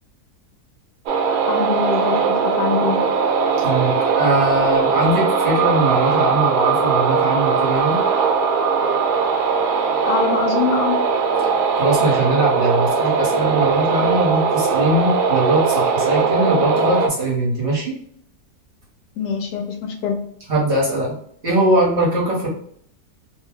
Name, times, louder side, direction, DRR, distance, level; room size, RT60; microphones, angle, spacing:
sound 1, 1.1-17.1, right 5 dB, 75° right, 1.0 m, -19 dB
voice 1, 1.5-3.0 10.0-11.0 19.2-20.2, left 5 dB, 80° left, 3 dB, 1.2 m, -23 dB
voice 2, 3.6-8.0 11.8-17.9 20.5-21.1 21.4-22.5, right 1 dB, 45° right, -6 dB, 1.2 m, -20 dB
3.0 x 2.2 x 3.4 m, 0.64 s
omnidirectional pair, 1.8 m